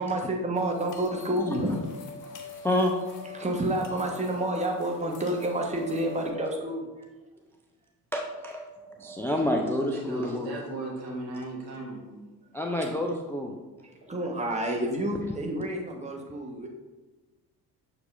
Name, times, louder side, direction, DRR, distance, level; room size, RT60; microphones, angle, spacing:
voice 1, 0.0-1.8 2.4-2.5 3.3-6.9 13.8-16.7, right 1 dB, 15° right, 1 dB, 1.2 m, -29 dB
sound 1, 0.6-6.3, left 2 dB, 40° left, 1.0 m, -43 dB
voice 2, 8.1-8.6 9.0-10.6 12.5-13.5, left 1 dB, 5° left, 2 dB, 0.4 m, -28 dB
voice 3, 9.9-12.5, right 2 dB, 75° right, -2 dB, 1.4 m, -37 dB
7.0 x 6.2 x 2.5 m, 1.2 s
figure-of-eight pair, 50°, 48 cm